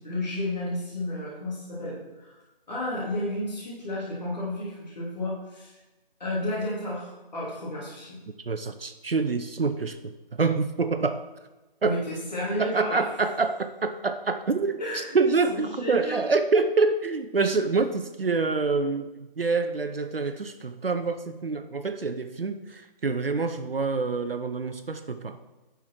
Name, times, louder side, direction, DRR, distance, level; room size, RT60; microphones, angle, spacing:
voice 1, 0.0-2.4 2.7-5.7 6.2-8.2 11.8-13.1 14.8-16.2, left 1 dB, 45° left, -5 dB, 3.1 m, -32 dB
voice 2, 8.5-10.1 10.4-11.2 11.8-12.0 12.6-19.1 19.4-25.6, right 4 dB, 75° right, 9 dB, 0.7 m, -26 dB
10.0 x 6.0 x 4.6 m, 1.1 s
figure-of-eight pair, 170°, 29 cm